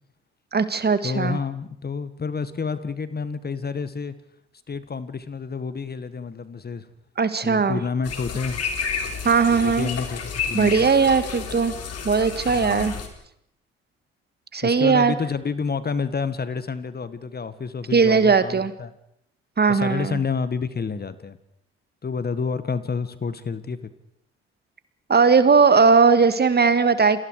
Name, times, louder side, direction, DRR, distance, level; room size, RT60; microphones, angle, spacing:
voice 1, 0.5-1.4 7.2-7.8 9.2-9.9 10.5-11.7 12.1-12.9 14.5-15.1 17.9-18.7 19.6-20.2 25.1-27.2, right 5 dB, 35° right, 12 dB, 1.9 m, -18 dB
voice 2, 1.0-4.1 4.7-6.9 7.4-8.6 9.5-10.9 12.5-13.0 14.6-18.9 19.7-21.4 22.0-23.9, left 5 dB, 30° left, 14 dB, 1.8 m, -29 dB
sound 1, 8.0-13.1, left 6 dB, 55° left, 3.8 m, -31 dB
29.0 x 22.5 x 4.9 m, 0.74 s
hypercardioid pair, 45°, 30 cm